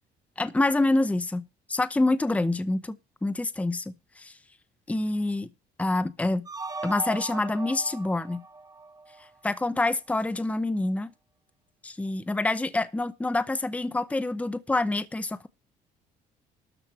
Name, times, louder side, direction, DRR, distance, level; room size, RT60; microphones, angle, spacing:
voice 1, 0.4-2.9 3.2-4.3 4.9-5.5 5.8-6.5 6.8-8.4 9.4-11.1 11.8-15.5, left 2 dB, 10° left, 0.8 m, -27 dB
sound 1, 6.4-9.6, right 3 dB, 20° right, 1.1 m, -38 dB
13.0 x 5.1 x 7.2 m
cardioid pair, 110°, 17 cm